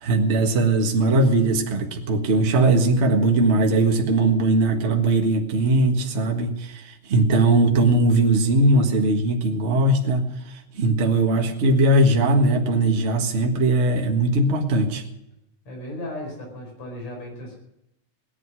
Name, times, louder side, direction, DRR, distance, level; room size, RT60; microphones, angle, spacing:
voice 1, 0.0-15.0, right 2 dB, 30° right, 2 dB, 1.3 m, -20 dB
voice 2, 15.7-17.6, left 1 dB, 60° left, 1 dB, 6.1 m, -35 dB
18.0 x 11.0 x 6.2 m, 0.85 s
omnidirectional pair, 3.4 m